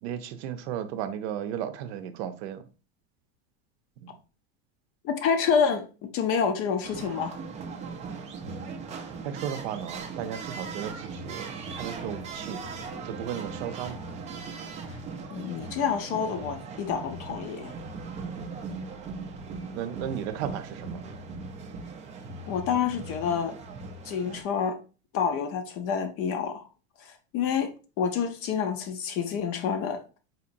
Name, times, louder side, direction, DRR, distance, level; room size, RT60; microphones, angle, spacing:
voice 1, 0.0-2.6 4.0-4.2 8.4-8.7 9.2-12.6 13.0-14.0 14.8-14.9 18.2-18.4 19.7-21.0, right 9 dB, 70° right, 0.6 m, -35 dB
voice 2, 5.0-7.4 15.3-17.7 22.5-23.6 24.0-24.8 25.1-26.7 27.0-27.7 28.0-30.0, left 7 dB, 40° left, 0.5 m, -28 dB
sound 1, 6.8-24.4, right 4 dB, 20° right, 0.4 m, -39 dB
4.1 x 2.8 x 2.5 m
supercardioid pair, 140°, 34 cm